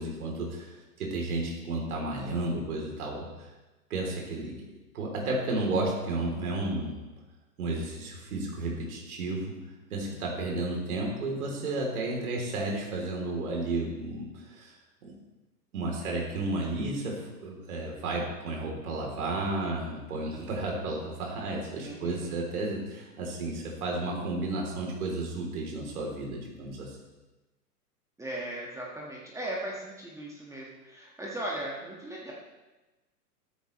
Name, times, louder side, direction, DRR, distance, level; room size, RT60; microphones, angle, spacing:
voice 1, 0.0-3.5 3.9-4.6 4.9-7.0 7.6-9.6 9.9-14.8 15.0-15.2 15.7-27.0, right 2 dB, 60° right, -1 dB, 3.5 m, -32 dB
voice 2, 10.1-10.6 21.8-22.5 28.2-32.3, right 1 dB, 5° right, -4 dB, 1.7 m, -38 dB
14.0 x 13.5 x 3.2 m, 1.1 s
hypercardioid pair, 115°, 48 cm